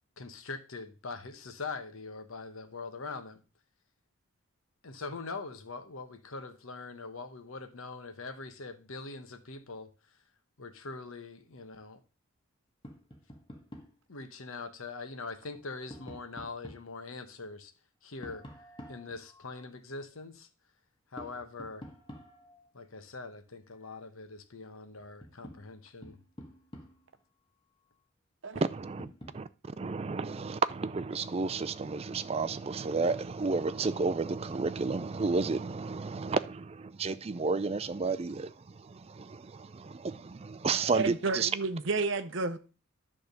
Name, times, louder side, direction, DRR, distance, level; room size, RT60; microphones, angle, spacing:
voice 1, 0.2-3.4 4.8-9.9 10.6-12.0 14.1-17.7 18.0-18.4 18.9-20.5 21.1-21.9 22.7-26.2, left 3 dB, 70° left, 1.0 m, -42 dB
Tap, 12.8-14.0 15.4-16.9 18.2-19.7 21.2-22.7 24.5-24.6 25.0-27.2 28.8-29.4, equal, 25° left, 1.4 m, -49 dB
voice 2, 28.6-29.1 29.3-41.5, right 4 dB, 25° right, 0.4 m, -32 dB
voice 3, 40.9-42.6, right 3 dB, 55° right, 0.7 m, -31 dB
10.5 x 3.6 x 6.7 m
head